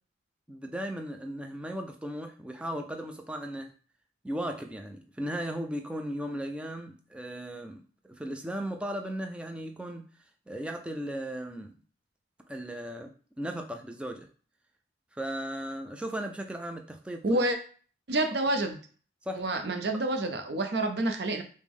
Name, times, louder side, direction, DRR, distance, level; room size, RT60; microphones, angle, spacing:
voice 1, 0.5-3.7 4.2-10.1 10.5-11.7 12.5-14.3 15.1-17.4 19.2-19.4, equal, 5° right, 0.3 m, -36 dB
voice 2, 17.2-17.6 18.1-18.8 19.3-21.4, right 2 dB, 55° right, 0.6 m, -28 dB
5.0 x 2.1 x 3.5 m
head